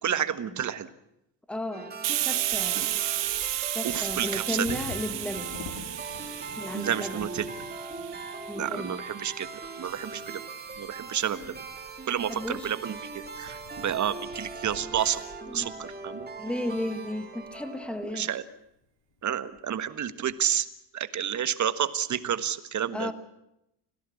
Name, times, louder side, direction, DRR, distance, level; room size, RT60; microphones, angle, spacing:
voice 1, 0.0-0.9 3.8-4.8 6.7-7.5 8.6-9.5 9.8-10.4 10.8-11.4 12.1-15.2 15.5-16.3 18.1-18.4 19.2-20.7 20.9-23.1, right 9 dB, 35° right, 12 dB, 1.4 m, -30 dB
voice 2, 1.5-3.0 3.7-5.6 6.6-7.3 8.4-9.0 12.3-12.7 15.5-15.9 16.4-18.3 22.9-23.1, left 1 dB, ahead, 10 dB, 1.5 m, -34 dB
sound 1, 1.7-18.3, right 4 dB, 20° right, 2.5 m, -41 dB
Hiss, 2.0-9.4, right 14 dB, 60° right, 1.5 m, -32 dB
Bird vocalization bird call bird song / Wind / Thunder, 2.2-18.1 18.8-18.9 19.2-19.6 20.0-20.6, left 4 dB, 70° left, 5.1 m, -49 dB
25.5 x 17.0 x 8.4 m, 0.84 s
cardioid pair, 140°, 48 cm